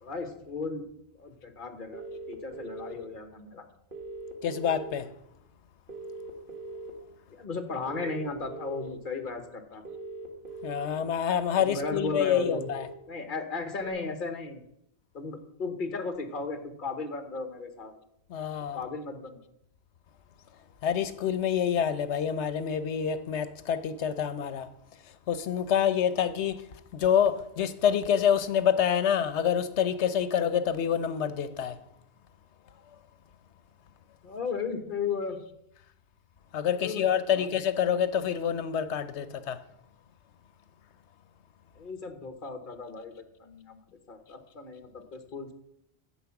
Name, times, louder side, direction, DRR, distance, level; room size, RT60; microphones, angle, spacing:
voice 1, 0.0-0.8 1.1-3.6 7.3-9.8 11.6-12.7 13.1-14.6 15.1-17.9 18.7-19.4 34.2-35.4 36.7-37.5 41.8-43.1 43.4-45.5, left 4 dB, 50° left, 1.4 m, -35 dB
sound 1, 1.9-2.9 3.9-4.9 5.9-6.9 7.9-8.9 9.9-10.9 11.8-12.8 13.8-13.9, right 3 dB, 50° right, 1.8 m, -40 dB
voice 2, 4.4-5.1 10.6-12.9 18.3-18.8 20.8-24.7 25.3-26.6 26.9-31.8 36.5-39.6, left 8 dB, 85° left, 1.0 m, -27 dB
10.0 x 7.5 x 5.9 m
omnidirectional pair, 1.1 m